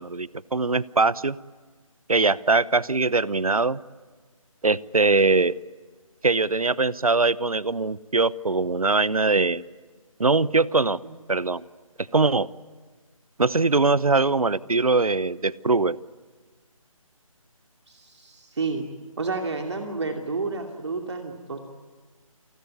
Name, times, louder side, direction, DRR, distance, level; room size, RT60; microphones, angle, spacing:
voice 1, 0.0-1.4 2.1-3.8 4.6-5.6 6.2-9.6 10.2-11.0 11.3-11.6 12.1-12.5 13.4-16.0, right 3 dB, 80° right, 21 dB, 0.9 m, -22 dB
voice 2, 17.9-18.9 19.2-21.6, right 4 dB, 50° right, 4 dB, 2.7 m, -30 dB
28.5 x 20.0 x 9.7 m, 1.4 s
figure-of-eight pair, 155°, 18 cm